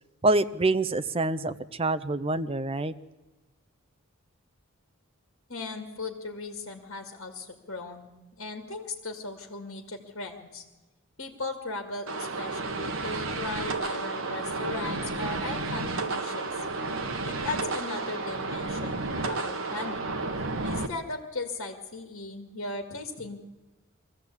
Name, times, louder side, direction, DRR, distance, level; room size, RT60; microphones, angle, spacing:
voice 1, 0.2-2.9, right 2 dB, 25° right, 11 dB, 0.6 m, -26 dB
voice 2, 5.5-10.6 11.2-16.6 17.2-20.2 20.6-23.4, left 3 dB, 60° left, 4 dB, 2.2 m, -37 dB
sound 1, 12.1-20.9, right 3 dB, 65° right, 1.5 m, -32 dB
23.0 x 15.0 x 8.5 m, 1.1 s
head